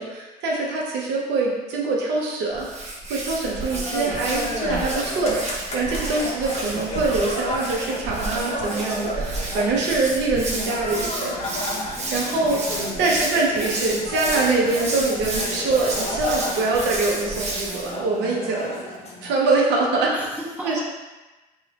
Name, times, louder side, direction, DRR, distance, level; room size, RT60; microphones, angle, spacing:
voice 1, 0.0-11.3 12.1-12.6 13.0-18.8 19.2-20.1 20.6-20.8, right 3 dB, 65° right, -2 dB, 0.8 m, -24 dB
Hands, 2.5-18.0, right 2 dB, 35° right, 0.8 m, -31 dB
sound 1, 3.6-19.3, left 1 dB, 35° left, 0.8 m, -32 dB
voice 2, 11.7-12.4 12.7-13.2 20.1-20.8, equal, 10° right, -6 dB, 1.2 m, -36 dB
2.9 x 2.4 x 4.0 m, 1.1 s
hypercardioid pair, 60°, 19 cm